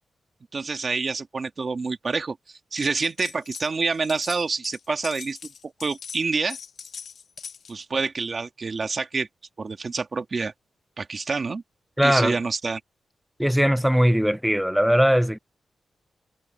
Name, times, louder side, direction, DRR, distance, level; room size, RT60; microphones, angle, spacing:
voice 1, 0.5-2.4 2.7-5.4 5.6-6.6 7.7-9.3 9.6-10.5 11.0-11.6 12.0-12.8, right 4 dB, 35° right, 1.9 m, -27 dB
sound 1, 2.8-3.7 3.9-7.8, left 7 dB, 65° left, 2.1 m, -41 dB
voice 2, 12.0-12.4 13.4-15.4, equal, ahead, 0.3 m, -20 dB
wide cardioid pair, 175°, 0 cm